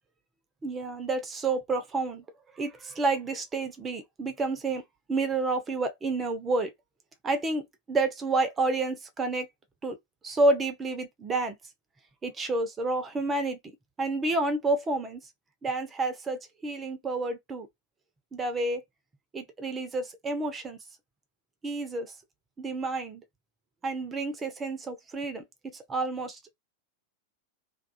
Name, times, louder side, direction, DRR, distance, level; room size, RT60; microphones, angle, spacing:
voice 1, 0.6-2.2 2.6-4.8 5.1-6.7 7.2-9.5 9.8-10.0 10.2-11.6 12.2-13.6 14.0-15.2 15.6-17.7 18.3-18.8 19.3-20.8 21.6-22.1 22.6-23.2 23.8-26.4, right 2 dB, 20° right, 0.6 m, -29 dB
2.4 x 2.3 x 2.5 m
figure-of-eight pair, 90°, 0 cm